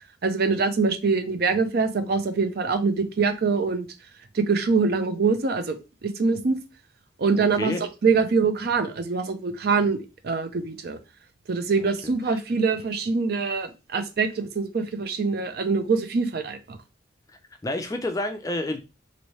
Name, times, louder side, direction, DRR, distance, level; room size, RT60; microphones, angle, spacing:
voice 1, 0.2-3.9 4.3-5.8 6.0-6.6 7.2-7.7 8.0-10.0 10.2-11.0 11.5-16.8, right 4 dB, 55° right, 0.5 m, -24 dB
voice 2, 17.6-18.8, left 1 dB, 20° left, 0.4 m, -28 dB
2.9 x 2.6 x 3.1 m
head